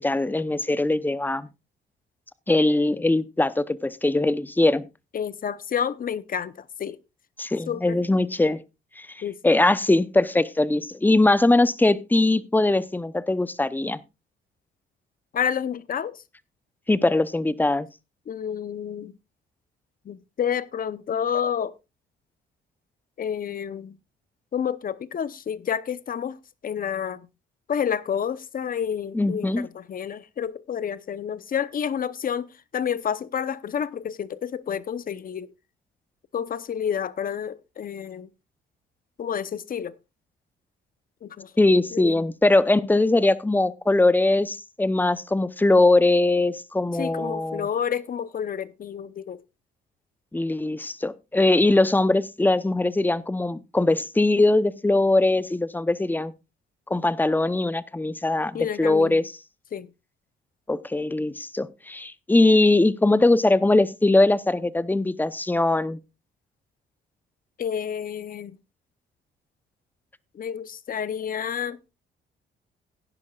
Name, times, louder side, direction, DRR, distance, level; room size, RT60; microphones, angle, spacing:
voice 1, 0.0-1.5 2.5-4.9 7.4-8.6 9.0-14.0 16.9-17.9 29.1-29.7 41.6-47.7 50.3-56.3 56.9-59.3 60.7-66.0, left 2 dB, 10° left, 0.7 m, -21 dB
voice 2, 5.1-7.0 7.7-8.0 9.2-9.4 15.3-16.2 18.3-19.1 20.1-21.7 23.2-24.0 24.5-26.4 26.6-27.3 27.7-35.5 36.3-38.3 39.2-39.9 41.2-41.5 41.9-42.2 47.0-49.4 51.6-51.7 58.5-59.2 59.7-59.9 67.6-68.6 70.3-71.8, left 8 dB, 45° left, 0.8 m, -29 dB
16.5 x 10.5 x 2.4 m
cardioid pair, 90°, 20 cm